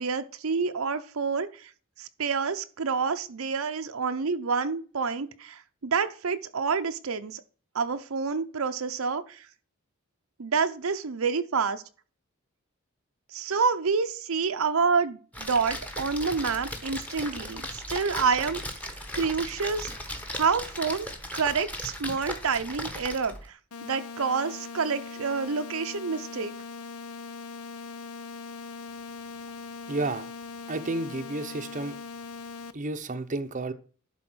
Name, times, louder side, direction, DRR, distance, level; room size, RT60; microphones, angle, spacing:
voice 1, 0.0-1.7 2.0-7.4 7.7-9.5 10.4-11.8 13.3-18.6 19.2-19.9 20.3-26.5, right 5 dB, 70° right, 9 dB, 0.7 m, -28 dB
Splash splatter, 15.3-23.5, left 1 dB, 5° left, 1.1 m, -37 dB
sound 1, 23.7-32.7, left 4 dB, 75° left, 0.7 m, -40 dB
voice 2, 29.9-30.3 30.7-32.0 32.7-33.7, right 2 dB, 35° right, 8 dB, 0.7 m, -31 dB
11.5 x 4.2 x 6.1 m, 0.40 s
head